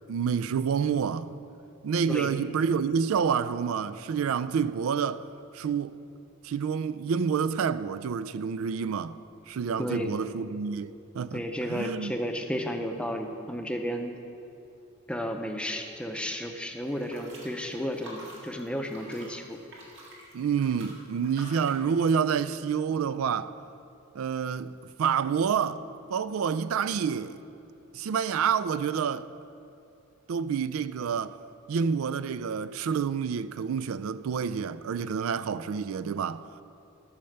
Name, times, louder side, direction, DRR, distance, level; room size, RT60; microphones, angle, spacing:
voice 1, 0.1-1.3 1.8-5.2 5.5-5.9 6.4-9.2 9.5-11.4 11.7-12.1 20.3-23.5 24.1-24.7 25.0-25.8 26.1-27.4 27.9-29.3 30.3-31.4 31.7-36.4, right 6 dB, 80° right, 0.4 m, -28 dB
voice 2, 9.8-10.2 11.3-14.1 15.1-19.6, equal, 5° left, 0.6 m, -33 dB
sound 1, 16.8-21.9, right 1 dB, 60° right, 2.1 m, -48 dB
12.5 x 5.7 x 6.6 m
head